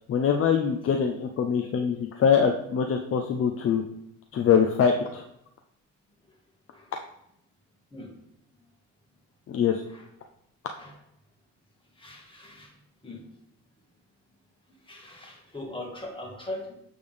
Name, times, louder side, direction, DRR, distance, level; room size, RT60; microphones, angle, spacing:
voice 1, 0.1-3.8 4.3-5.2 9.5-9.8, left 7 dB, 50° left, 3 dB, 0.6 m, -23 dB
voice 2, 12.0-12.8 13.0-13.2 14.9-16.7, left 1 dB, 15° left, -1 dB, 1.7 m, -40 dB
8.2 x 3.5 x 3.4 m, 0.75 s
cardioid pair, 90°, 30 cm